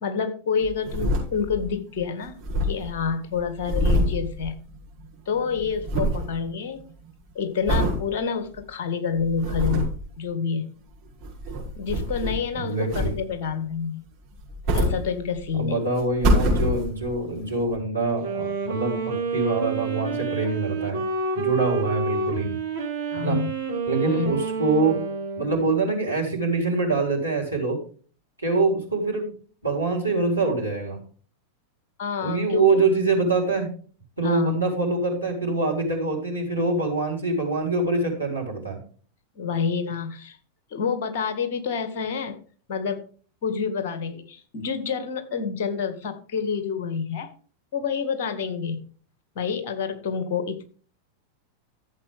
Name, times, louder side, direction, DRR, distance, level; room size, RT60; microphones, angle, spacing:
voice 1, 0.0-2.4 2.6-4.5 5.3-6.8 7.3-10.7 11.8-14.0 14.7-15.8 23.1-23.5 24.1-24.3 32.0-32.9 34.2-34.6 39.4-40.4 40.7-42.4 42.7-43.0 43.4-47.3 47.7-48.8 49.4-50.6, left 6 dB, 50° left, 8 dB, 2.0 m, -28 dB
sound 1, 0.6-1.7 2.0-2.1 2.3-5.1 5.3-6.3 6.8-7.1 7.7-8.0 8.6-8.7 9.2-10.0 11.0-12.5 12.9-13.5 14.3-15.6 16.0-17.2 17.7-17.8, equal, 40° right, 5.9 m, -25 dB
voice 2, 12.5-13.1 15.6-21.0 21.3-22.5 23.2-23.4 23.9-25.0 25.4-27.8 28.4-29.3 29.6-31.0 32.2-33.7 34.2-38.8, right 3 dB, 85° right, -1 dB, 4.0 m, -24 dB
Wind instrument woodwind instrument, 18.1-25.8, right 4 dB, 65° right, 3.4 m, -29 dB
14.0 x 7.7 x 3.5 m, 0.41 s
figure-of-eight pair, 90°, 0 cm